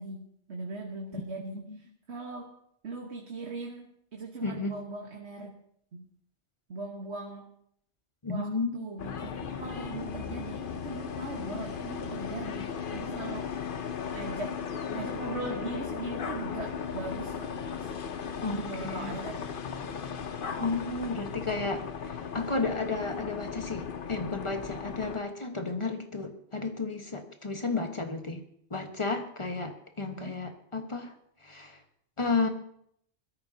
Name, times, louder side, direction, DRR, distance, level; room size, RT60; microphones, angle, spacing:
voice 1, 0.0-2.5 2.8-5.5 5.9-6.0 6.7-7.5 8.3-13.7 14.1-17.5 17.8-18.0 18.5-19.6 30.1-30.4, right 3 dB, 70° right, 1 dB, 1.6 m, -40 dB
voice 2, 4.4-4.7 8.2-8.8 18.4-19.1 20.6-28.4 28.7-31.1 31.4-31.8 32.2-32.5, left 3 dB, 25° left, 5 dB, 1.3 m, -32 dB
helicopter over neighborhood, 9.0-25.2, left 7 dB, 50° left, 0.9 m, -36 dB
21.0 x 13.5 x 2.8 m, 0.70 s
omnidirectional pair, 1.2 m